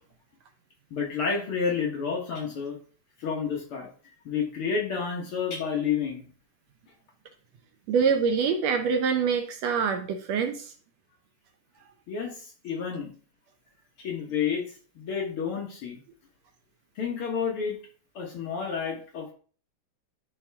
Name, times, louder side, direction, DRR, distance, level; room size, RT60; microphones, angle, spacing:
voice 1, 0.9-2.8 3.2-3.9 4.3-6.3 12.1-13.1 14.0-16.0 17.0-17.8 18.2-19.3, left 6 dB, 55° left, 0 dB, 1.9 m, -30 dB
voice 2, 7.9-10.7, right 6 dB, 70° right, 5 dB, 1.7 m, -25 dB
11.0 x 4.6 x 3.5 m, 0.42 s
omnidirectional pair, 3.4 m